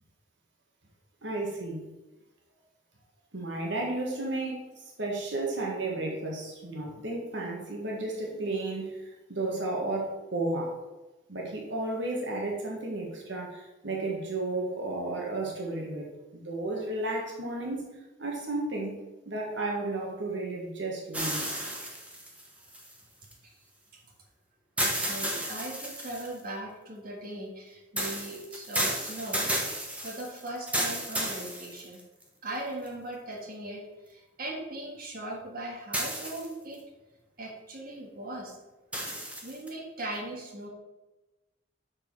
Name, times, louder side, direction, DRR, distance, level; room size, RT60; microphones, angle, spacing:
voice 1, 1.2-1.8 3.3-4.6 5.0-10.7 11.3-17.8 18.2-19.0 19.2-21.6, right 2 dB, 70° right, -1 dB, 1.6 m, -33 dB
sound 1, 21.1-23.3 24.8-26.4 28.0-32.2 32.9-33.0 35.9-36.8 38.9-39.7, right 1 dB, 5° right, 1.2 m, -32 dB
voice 2, 24.8-32.0 32.4-36.8 37.4-38.6 39.1-40.7, right 1 dB, 50° right, -2 dB, 1.6 m, -39 dB
6.5 x 6.5 x 4.6 m, 1.1 s
head